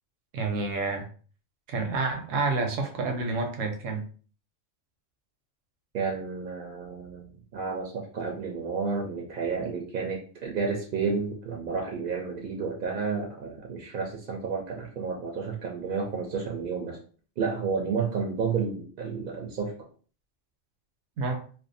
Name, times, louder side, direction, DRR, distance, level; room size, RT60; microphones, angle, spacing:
voice 1, 0.3-1.1 1.7-4.0 21.2-21.4, right 3 dB, 80° right, 4 dB, 1.0 m, -29 dB
voice 2, 5.9-17.0 17.4-19.7, right 5 dB, 60° right, 0 dB, 0.5 m, -31 dB
2.5 x 2.2 x 2.6 m, 0.41 s
omnidirectional pair, 1.3 m